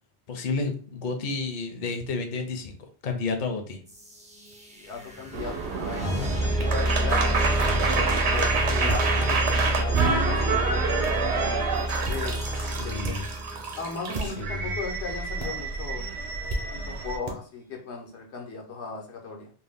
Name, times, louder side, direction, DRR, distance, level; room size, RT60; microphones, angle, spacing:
voice 1, 0.3-2.8 3.0-3.8 12.6-13.3 14.2-14.7, left 4 dB, 55° left, 5 dB, 0.7 m, -31 dB
sound 1, 3.9-14.7, equal, 10° right, 0.3 m, -29 dB
voice 2, 4.7-11.6 12.1-13.2 13.8-16.0 16.7-19.5, left 5 dB, 90° left, 1 dB, 1.0 m, -37 dB
sound 2, 5.3-17.2, right 4 dB, 85° right, 0.9 m, -28 dB
sound 3, 6.6-6.7 7.6-7.7 8.7-9.2 9.7-10.2 11.0-11.2 11.9-12.2 13.0-13.2 14.0-14.5 15.4-15.5 16.5-16.6 17.2-17.4, right 2 dB, 45° right, 0.6 m, -33 dB
2.6 x 2.1 x 3.4 m, 0.39 s
omnidirectional pair, 1.1 m